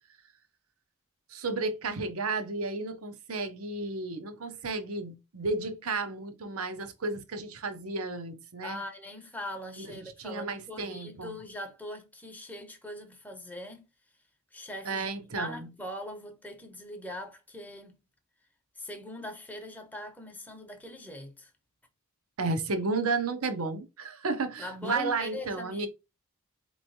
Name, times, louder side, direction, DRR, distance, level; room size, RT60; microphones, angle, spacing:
voice 1, 1.3-8.8 9.8-9.9 10.2-11.4 14.9-15.6 22.4-25.9, right 3 dB, 80° right, 0.8 m, -32 dB
voice 2, 8.6-13.8 14.5-18.0 18.8-21.5 24.6-25.9, left 1 dB, 10° left, 0.8 m, -41 dB
4.3 x 3.1 x 2.7 m
head